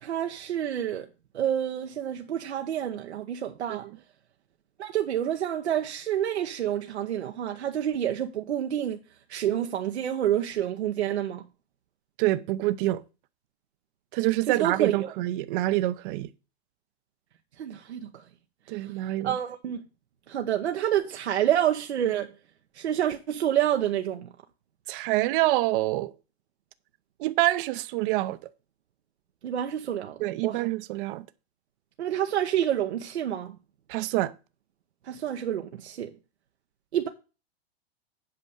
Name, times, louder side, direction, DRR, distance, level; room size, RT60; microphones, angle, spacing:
voice 1, 0.0-1.1 1.3-3.9 4.8-9.0 9.3-11.4 14.5-15.1 17.6-18.1 18.7-18.9 19.2-19.8 20.3-22.3 22.7-24.3 29.4-30.6 32.0-33.6 35.0-36.1 36.9-37.1, right 10 dB, 85° right, 0.9 m, -28 dB
voice 2, 12.2-13.0 14.1-16.3 18.7-19.3 24.9-26.1 27.2-28.4 30.2-31.2 33.9-34.3, right 17 dB, 55° right, 0.7 m, -26 dB
8.3 x 5.2 x 6.3 m
hypercardioid pair, 115°, 32 cm